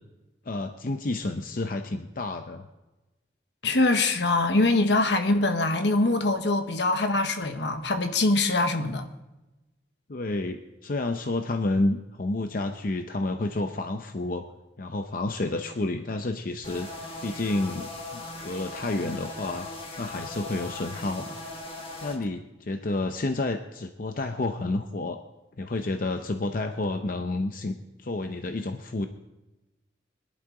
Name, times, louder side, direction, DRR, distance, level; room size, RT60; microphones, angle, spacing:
voice 1, 0.5-2.7 10.1-14.4 14.8-16.9 17.2-19.7 20.0-21.4 22.0-25.2 25.6-29.1, left 2 dB, 50° left, 0.7 m, -30 dB
voice 2, 3.6-9.1, left 2 dB, 70° left, 1.2 m, -23 dB
sound 1, 16.6-22.2, left 2 dB, 30° left, 1.7 m, -39 dB
21.5 x 11.5 x 3.8 m
head